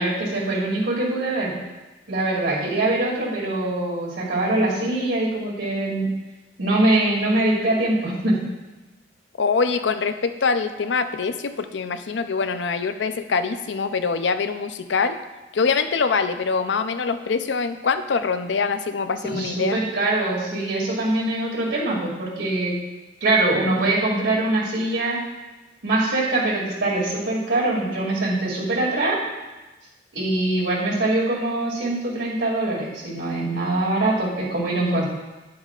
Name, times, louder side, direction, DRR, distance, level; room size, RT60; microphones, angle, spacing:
voice 1, 0.0-1.5 2.1-6.1 6.6-8.4 19.2-22.7 23.2-25.2 25.8-29.2 30.1-35.0, right 2 dB, 85° right, -4 dB, 2.6 m, -23 dB
voice 2, 9.4-15.2 15.5-19.8, left 5 dB, 80° left, 9 dB, 0.5 m, -24 dB
10.0 x 8.6 x 2.5 m, 1.2 s
head